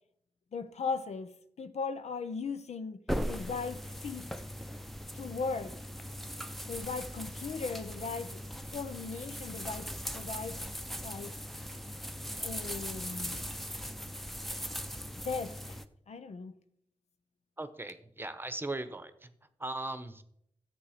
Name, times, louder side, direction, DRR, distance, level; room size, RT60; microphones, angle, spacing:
voice 1, 0.5-4.3 5.1-5.8 6.7-8.4 8.7-10.6 11.0-11.3 12.4-13.5 15.2-15.8 16.1-16.5, left 4 dB, 80° left, 0.8 m, -38 dB
sound 1, 3.1-15.8, equal, ahead, 0.7 m, -39 dB
voice 2, 17.6-20.2, right 2 dB, 20° right, 1.0 m, -39 dB
14.0 x 8.0 x 5.0 m
wide cardioid pair, 105°, 11 cm